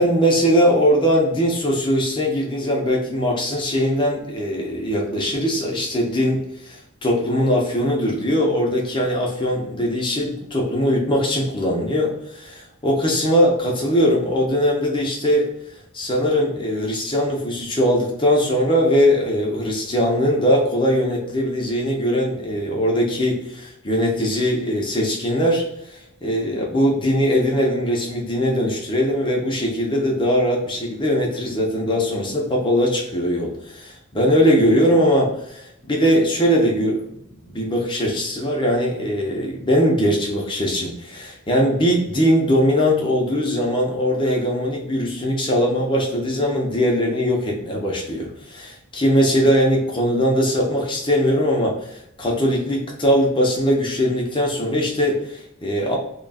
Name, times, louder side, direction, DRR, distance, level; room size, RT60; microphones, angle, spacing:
voice 1, 0.0-15.5 15.9-25.6 26.2-56.0, equal, 25° left, -1 dB, 0.8 m, -20 dB
3.0 x 2.4 x 4.1 m, 0.78 s
head